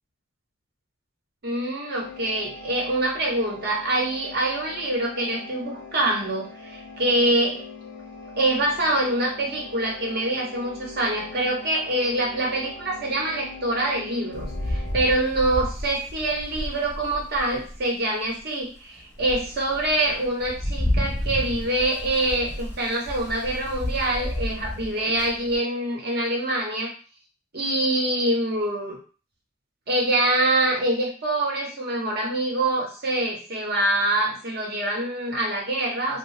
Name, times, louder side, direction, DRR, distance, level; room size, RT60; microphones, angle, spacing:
voice 1, 1.4-7.6 8.4-26.9 27.5-29.0 29.9-36.2, right 1 dB, 55° right, -1 dB, 0.9 m, -25 dB
sound 1, 2.0-15.3, left 3 dB, 65° left, 0.5 m, -42 dB
Rain, 14.3-17.8 18.4-18.5 19.0-25.6, left 1 dB, 10° left, 0.6 m, -31 dB
2.7 x 2.1 x 3.2 m, 0.37 s
head